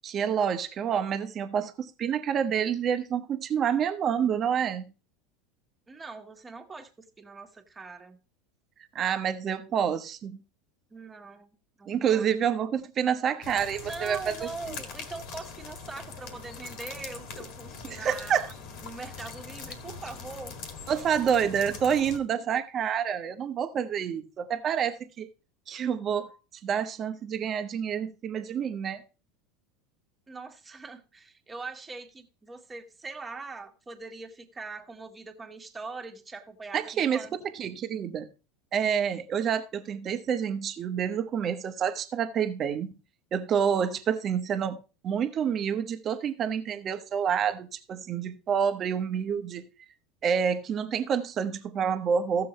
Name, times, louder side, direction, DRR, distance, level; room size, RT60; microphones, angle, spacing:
voice 1, 0.0-4.9 8.9-10.4 11.9-14.3 14.7-14.8 17.9-18.5 20.9-25.3 25.7-26.3 26.6-29.0 36.7-38.3 38.7-42.9 43.3-49.7 50.2-52.5, right 8 dB, 40° right, 1.1 m, -28 dB
voice 2, 5.9-8.2 10.9-11.5 11.8-12.3 13.8-18.4 18.8-20.6 30.3-37.4, right 3 dB, 20° right, 1.7 m, -42 dB
sound 1, 13.4-22.2, left 5 dB, 60° left, 2.0 m, -42 dB
15.0 x 7.0 x 3.2 m
hypercardioid pair, 85°, 0 cm